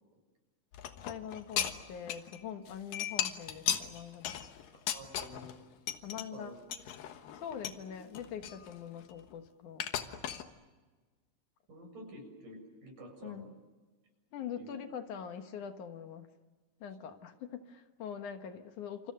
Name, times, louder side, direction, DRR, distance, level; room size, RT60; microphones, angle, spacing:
sound 1, 0.7-2.4 2.7-5.6 5.9-6.2 6.7-7.8 8.1-9.3 9.8-10.4, left 10 dB, 90° left, 3.1 m, -36 dB
voice 1, 1.0-4.4 6.0-6.5 7.3-9.8 13.2-13.5 14.3-16.3 16.8-19.1, left 8 dB, 70° left, 7 dB, 2.7 m, -43 dB
voice 2, 4.7-5.6 6.3-6.5 7.4-7.5 7.9-8.0 11.7-13.5 14.6-14.8 17.0-17.2, right 1 dB, 70° right, 3 dB, 8.4 m, -50 dB
28.5 x 28.0 x 6.7 m, 1.3 s
omnidirectional pair, 3.8 m